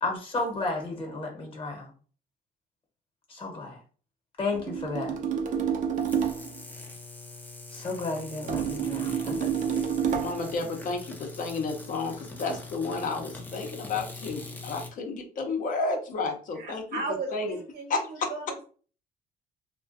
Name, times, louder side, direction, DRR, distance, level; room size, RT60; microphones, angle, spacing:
voice 1, 0.0-1.9 3.3-3.8 4.4-5.2 7.7-9.5, left 3 dB, 30° left, 2 dB, 0.9 m, -32 dB
sound 1, 4.5-6.6 8.5-10.5, right 7 dB, 50° right, 0.5 m, -29 dB
sound 2, 5.9-14.9, left 3 dB, 10° left, 0.4 m, -43 dB
voice 2, 10.1-16.8 17.3-17.6 17.9-18.3, left 3 dB, 50° left, 3 dB, 0.6 m, -31 dB
voice 3, 16.5-18.6, right 3 dB, 70° right, 2 dB, 0.9 m, -36 dB
2.3 x 2.1 x 2.5 m, 0.40 s
cardioid pair, 110°, 17 cm